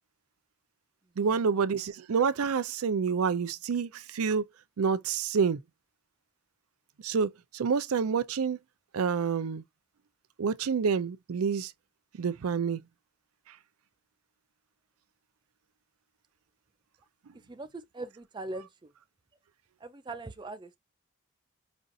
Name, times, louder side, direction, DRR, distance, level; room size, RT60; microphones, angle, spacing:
voice 1, 1.2-4.4 4.8-5.6 7.0-8.6 8.9-9.6 10.4-11.7 12.2-12.8, right 6 dB, 85° right, 0.5 m, -28 dB
voice 2, 17.3-18.9 19.8-20.8, right 2 dB, 20° right, 0.4 m, -41 dB
5.1 x 2.4 x 2.6 m
head